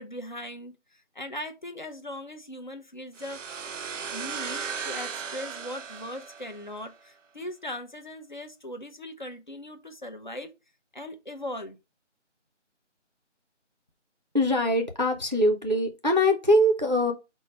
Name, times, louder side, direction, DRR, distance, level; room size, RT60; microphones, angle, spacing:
voice 1, 0.0-3.7 4.1-10.5 10.9-11.8, left 1 dB, 40° left, 0.6 m, -39 dB
sound 1, 3.2-6.9, right 6 dB, 90° right, 0.6 m, -36 dB
voice 2, 14.3-17.1, left 1 dB, 40° right, 0.4 m, -22 dB
4.5 x 2.1 x 4.4 m
figure-of-eight pair, 170°, 37 cm